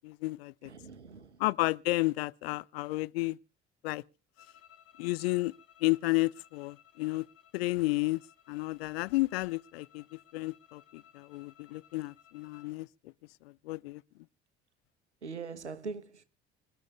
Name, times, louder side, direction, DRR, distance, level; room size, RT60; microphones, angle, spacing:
voice 1, 0.0-0.7 1.4-3.4 3.8-4.0 5.0-5.5 5.8-7.3 7.5-8.2 8.5-13.1 13.4-14.0, left 21 dB, 65° left, 0.6 m, -32 dB
voice 2, 0.6-1.4 15.2-16.2, right 5 dB, 85° right, 1.2 m, -42 dB
sound 1, 4.3-12.8, left 10 dB, 45° left, 2.9 m, -61 dB
26.0 x 12.0 x 2.4 m
figure-of-eight pair, 55°, 34 cm